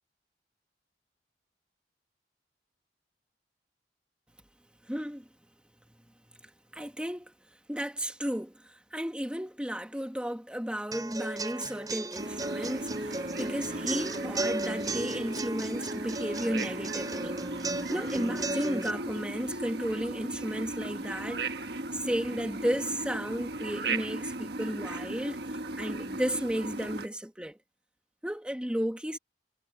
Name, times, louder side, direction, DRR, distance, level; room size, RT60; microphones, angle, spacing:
voice 1, 4.8-5.3 6.3-7.3 7.7-17.4 17.9-21.4 21.9-27.6 28.2-29.2, equal, 5° right, 1.8 m, -34 dB
sound 1, 10.9-18.9, right 2 dB, 20° right, 6.0 m, -35 dB
sound 2, 12.2-27.1, right 2 dB, 65° right, 1.4 m, -37 dB
head